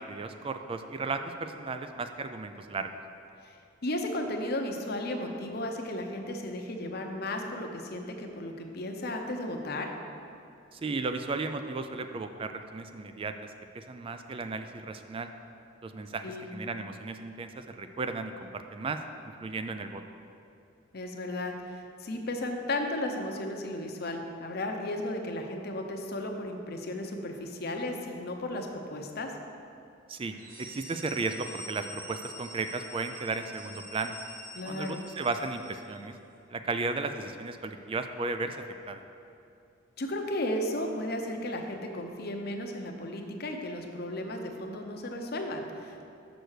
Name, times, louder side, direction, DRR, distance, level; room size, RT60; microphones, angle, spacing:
voice 1, 0.0-3.0 10.7-13.3 13.7-15.3 15.8-19.0 19.4-20.0 30.1-34.2 34.7-36.1 36.5-38.6 38.9-39.0, right 3 dB, 30° right, 8 dB, 0.3 m, -35 dB
voice 2, 3.4-9.9 16.2-16.5 20.9-29.3 34.5-35.0 40.0-46.1, left 1 dB, 55° left, 3 dB, 0.8 m, -34 dB
sound 1, 30.3-36.0, equal, 45° right, 1.8 m, -46 dB
6.7 x 6.1 x 6.5 m, 2.6 s
head